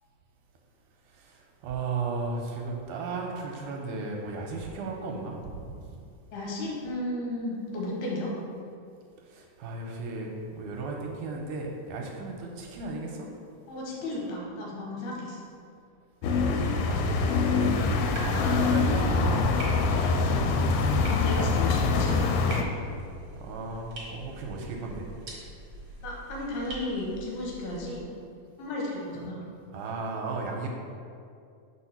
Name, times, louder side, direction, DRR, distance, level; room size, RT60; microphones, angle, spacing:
voice 1, 1.1-5.4 5.7-5.8 9.3-13.3 16.3-19.4 23.4-25.1 29.2-29.3 29.7-30.7, right 3 dB, 80° right, 0 dB, 2.0 m, -35 dB
voice 2, 6.3-8.3 13.7-15.4 19.9-20.1 21.1-22.3 26.0-28.0 28.6-29.4, left 2 dB, 75° left, -3 dB, 2.5 m, -34 dB
sound 1, 16.2-22.6, left 4 dB, 90° left, 2.2 m, -24 dB
sound 2, 18.1-28.0, right 2 dB, 50° right, 1.6 m, -44 dB
4.7 x 4.4 x 5.8 m, 2.4 s
omnidirectional pair, 3.8 m